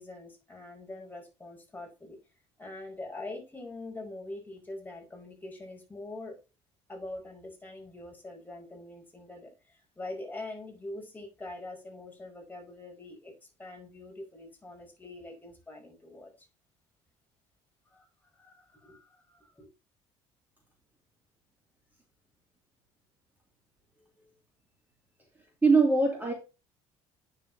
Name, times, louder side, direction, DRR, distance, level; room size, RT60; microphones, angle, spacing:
voice 1, 0.0-2.2 2.6-6.4 6.9-16.5 17.9-18.1 18.4-19.7, left 2 dB, 15° left, 5.1 m, -44 dB
voice 2, 25.6-26.3, right 4 dB, 15° right, 2.6 m, -22 dB
9.2 x 7.1 x 2.8 m
cardioid pair, 100°, 13 cm